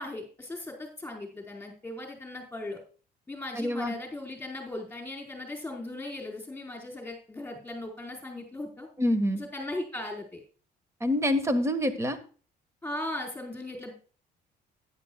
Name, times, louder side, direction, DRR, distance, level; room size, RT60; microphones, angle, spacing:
voice 1, 0.0-2.8 3.3-8.9 9.3-10.4 12.8-13.9, left 1 dB, 10° left, 2 dB, 4.4 m, -38 dB
voice 2, 3.5-3.9 9.0-9.4 11.0-12.2, left 1 dB, 15° right, 10 dB, 1.6 m, -26 dB
13.5 x 10.5 x 2.3 m, 0.38 s
cardioid pair, 110°, 17 cm